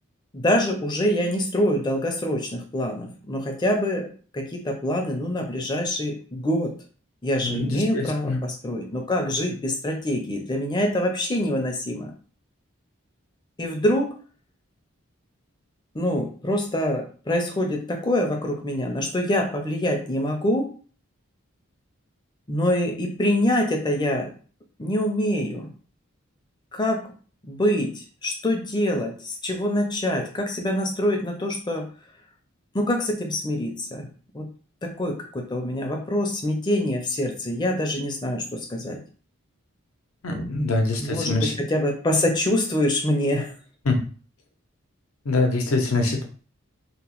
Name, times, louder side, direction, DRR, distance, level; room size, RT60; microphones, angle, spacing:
voice 1, 0.3-4.1 4.3-6.7 7.2-12.1 13.6-14.2 15.9-20.7 22.5-24.3 24.8-25.7 26.7-27.1 27.4-31.9 32.7-34.1 34.3-34.5 34.8-39.0 41.0-43.5, left 1 dB, 20° left, 3 dB, 0.4 m, -25 dB
voice 2, 7.4-8.4 40.2-41.5 43.9-44.0 45.3-46.2, left 2 dB, 85° left, 3 dB, 0.7 m, -24 dB
2.9 x 2.0 x 3.0 m, 0.40 s
head